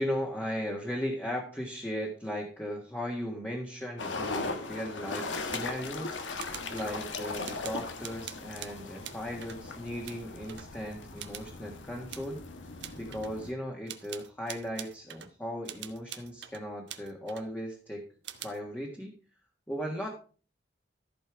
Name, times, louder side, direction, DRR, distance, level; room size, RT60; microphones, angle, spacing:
voice 1, 0.0-6.2 6.7-12.4 12.9-18.0 18.4-19.1 19.7-20.1, equal, 10° left, -1 dB, 1.6 m, -37 dB
sound 1, 4.0-13.5, left 3 dB, 90° left, 1.5 m, -39 dB
sound 2, 5.2-5.9 6.4-7.0 7.4-9.6 10.0-10.7 11.2-11.5 12.1-12.4 12.8-13.3 13.9-15.3 15.6-17.5 18.2-18.6, right 10 dB, 70° right, 1.1 m, -45 dB
14.0 x 5.4 x 5.0 m, 0.39 s
head